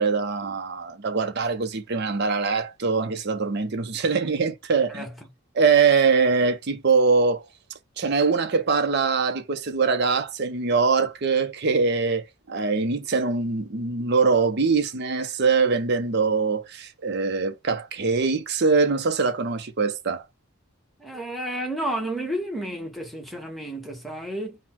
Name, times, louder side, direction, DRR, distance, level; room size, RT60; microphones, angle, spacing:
voice 1, 0.0-5.1 5.5-7.4 8.0-20.2, right 4 dB, 50° right, 0.6 m, -23 dB
voice 2, 21.0-24.6, right 1 dB, ahead, 0.8 m, -31 dB
3.8 x 2.1 x 4.4 m
head